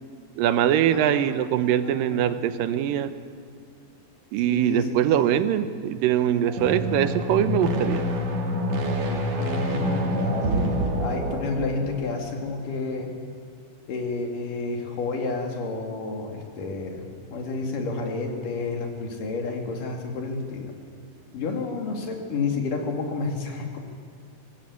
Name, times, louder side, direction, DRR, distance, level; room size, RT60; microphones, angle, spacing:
voice 1, 0.4-3.1 4.3-8.0, right 10 dB, 90° right, 11 dB, 2.6 m, -22 dB
voice 2, 1.8-2.2 2.7-2.8 4.5-5.3 9.4-13.1 13.9-20.7 21.3-23.8, left 3 dB, 75° left, 2 dB, 4.1 m, -30 dB
sound 1, 6.5-12.1, equal, 55° right, 3.2 m, -27 dB
24.0 x 18.0 x 8.4 m, 2.1 s
omnidirectional pair, 3.9 m